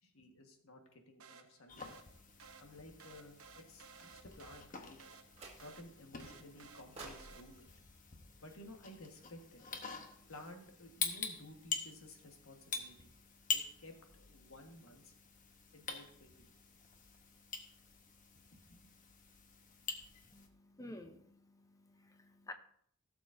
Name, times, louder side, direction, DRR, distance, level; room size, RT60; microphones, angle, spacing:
voice 1, 0.0-1.9 2.6-5.0 5.6-7.7 8.4-9.6 10.3-13.1 13.5-15.1 15.7-16.5 18.5-18.8, left 1 dB, 85° left, 3 dB, 1.5 m, -55 dB
sound 1, 1.2-7.8, right 6 dB, 85° right, 0.9 m, -58 dB
sound 2, 1.7-20.5, left 5 dB, 40° left, 1.0 m, -46 dB
sound 3, 5.3-6.0 7.0-9.2, right 3 dB, 30° right, 1.8 m, -55 dB
voice 2, 20.3-22.5, left 1 dB, 15° left, 7 dB, 0.7 m, -52 dB
16.0 x 6.9 x 2.6 m, 0.67 s
head